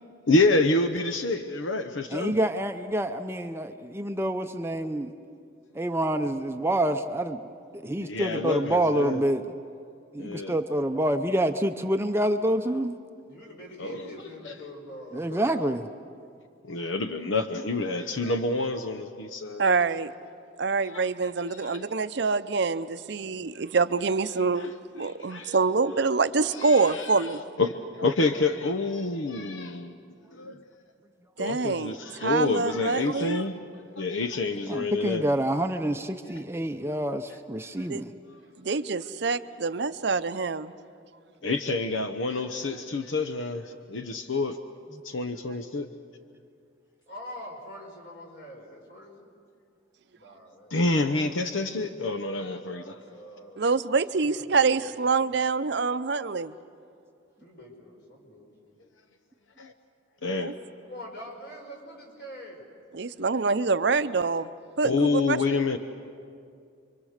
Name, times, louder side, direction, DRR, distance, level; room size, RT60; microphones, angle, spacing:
voice 1, 0.3-2.4 8.0-9.2 10.2-10.5 13.8-14.1 14.4-14.5 16.6-19.6 20.9-21.0 21.6-21.8 24.6-24.7 25.0-25.6 26.6-27.3 27.6-30.0 30.3-30.6 31.4-33.5 34.0-35.3 41.4-44.6 45.0-45.9 50.7-52.9 59.6-59.7 60.2-60.5 64.8-65.8, left 3 dB, 75° left, 8 dB, 0.9 m, -28 dB
voice 2, 2.1-5.1 5.7-7.4 7.7-9.4 10.1-13.0 15.1-15.8 34.7-38.1, right 1 dB, 15° right, 7 dB, 0.6 m, -27 dB
voice 3, 13.3-15.6 47.1-49.3 50.1-51.0 52.6-53.6 54.2-55.2 57.4-58.7 60.8-62.6, equal, 55° left, 0 dB, 5.1 m, -44 dB
voice 4, 19.6-20.1 20.6-27.4 31.4-31.9 32.2-33.4 37.9-38.0 38.6-40.7 53.6-56.5 60.4-60.5 62.9-64.5 64.8-65.4, right 4 dB, 60° right, 12 dB, 0.6 m, -26 dB
28.5 x 23.5 x 6.5 m, 2.4 s
head